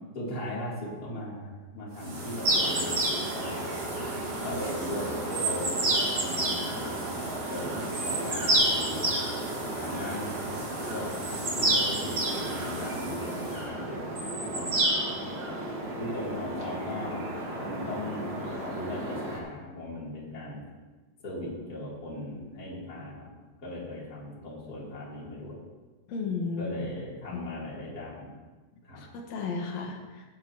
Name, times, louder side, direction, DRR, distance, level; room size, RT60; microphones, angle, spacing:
voice 1, 0.1-3.7 4.4-7.2 7.5-9.1 9.8-14.7 15.3-15.4 16.0-17.2 17.5-20.6 21.2-23.3 23.6-25.6 26.6-28.3 28.8-29.0, left 1 dB, 25° left, -7 dB, 3.4 m, -38 dB
sound 1, 1.9-13.7, right 2 dB, 65° right, 4.8 m, -38 dB
sound 2, 2.4-19.4, right 1 dB, 40° right, 1.9 m, -31 dB
voice 2, 26.1-26.7 27.3-27.4 29.0-30.2, left 4 dB, 55° left, 0 dB, 2.4 m, -34 dB
16.0 x 10.5 x 3.0 m, 1.3 s
omnidirectional pair, 4.2 m